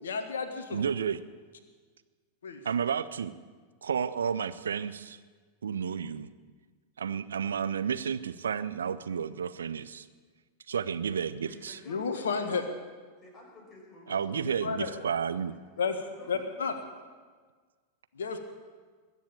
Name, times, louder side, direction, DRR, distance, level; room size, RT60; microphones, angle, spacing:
voice 1, 0.0-0.8 2.4-2.6 11.9-12.6 14.4-14.9 15.8-15.9 16.3-16.7 18.1-18.4, left 5 dB, 65° left, 7 dB, 1.5 m, -31 dB
voice 2, 0.7-1.2 2.6-3.3 3.8-5.2 5.6-6.3 7.0-10.1 10.7-11.8 14.1-15.6, right 7 dB, 70° right, 14 dB, 0.6 m, -31 dB
voice 3, 11.5-12.6 13.2-16.8, left 1 dB, 20° left, -2 dB, 5.8 m, -53 dB
21.0 x 7.3 x 8.7 m, 1.5 s
figure-of-eight pair, 90°, 0 cm